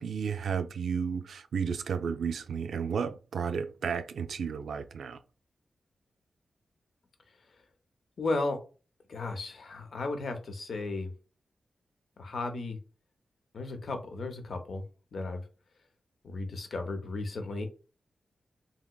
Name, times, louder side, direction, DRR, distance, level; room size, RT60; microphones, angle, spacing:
voice 1, 0.0-5.2, right 6 dB, 85° right, 0.3 m, -33 dB
voice 2, 8.2-8.6 9.1-11.1 12.2-12.8 13.5-14.8 15.1-15.5 16.2-17.7, left 3 dB, 65° left, 0.6 m, -34 dB
3.4 x 2.8 x 2.2 m
wide cardioid pair, 145°, 0 cm